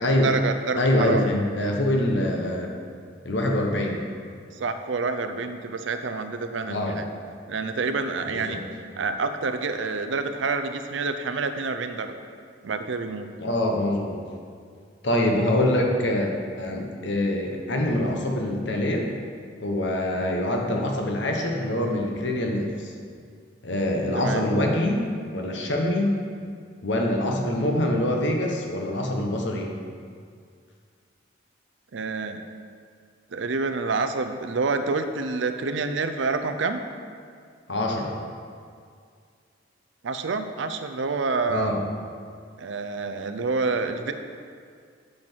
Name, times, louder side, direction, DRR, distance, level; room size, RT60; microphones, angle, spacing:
voice 1, 0.0-1.3 4.6-7.1 7.5-8.6 9.0-12.1 12.6-13.3 24.1-24.5 31.9-32.4 33.3-36.8 40.0-41.7 42.6-44.1, right 4 dB, 75° right, 8 dB, 0.5 m, -28 dB
voice 2, 0.8-2.7 3.2-4.0 6.7-7.0 8.3-8.6 13.4-14.2 15.0-16.3 16.6-19.1 19.6-22.9 23.6-25.1 25.3-26.2 26.8-29.7 37.7-38.2 41.5-41.8, left 1 dB, 70° left, 1 dB, 1.1 m, -24 dB
8.5 x 5.9 x 4.5 m, 2.1 s
head